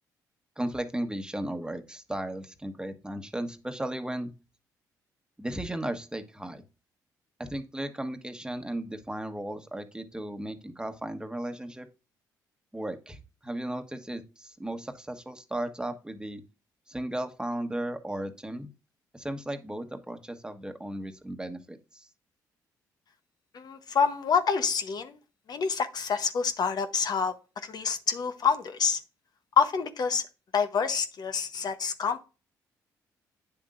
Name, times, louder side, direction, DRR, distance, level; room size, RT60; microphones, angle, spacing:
voice 1, 0.6-4.3 5.4-6.6 7.4-11.9 12.7-16.4 16.9-18.7 19.1-22.1, right 1 dB, 10° right, 7 dB, 1.3 m, -35 dB
voice 2, 23.5-25.1 25.5-27.3 27.6-29.0 29.6-30.2 30.5-32.3, left 6 dB, 55° left, 9 dB, 1.0 m, -27 dB
9.0 x 7.2 x 2.6 m, 0.31 s
supercardioid pair, 55°, 8 cm